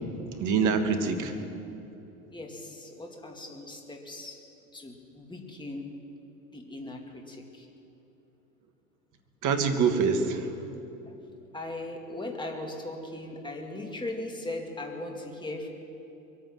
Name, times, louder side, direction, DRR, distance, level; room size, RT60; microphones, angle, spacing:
voice 1, 0.4-1.4 9.4-10.6, right 5 dB, 45° right, 7 dB, 1.9 m, -25 dB
voice 2, 2.3-4.4 4.7-5.9 6.5-7.7 11.1-11.2 11.5-15.7, left 2 dB, 10° left, 2 dB, 2.3 m, -38 dB
23.0 x 9.2 x 6.0 m, 2.9 s
hypercardioid pair, 75°, 42 cm